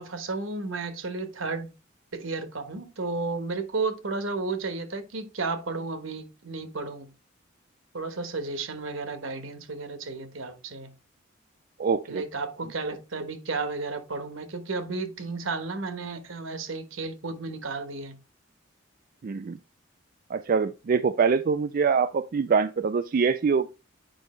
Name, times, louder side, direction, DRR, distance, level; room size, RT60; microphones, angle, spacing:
voice 1, 0.0-1.7 2.1-7.1 7.9-10.9 12.1-18.2, right 3 dB, 75° right, 1.2 m, -33 dB
voice 2, 11.8-12.2 19.2-19.6 20.3-23.7, right 5 dB, 45° right, 0.3 m, -24 dB
9.0 x 5.1 x 3.2 m
head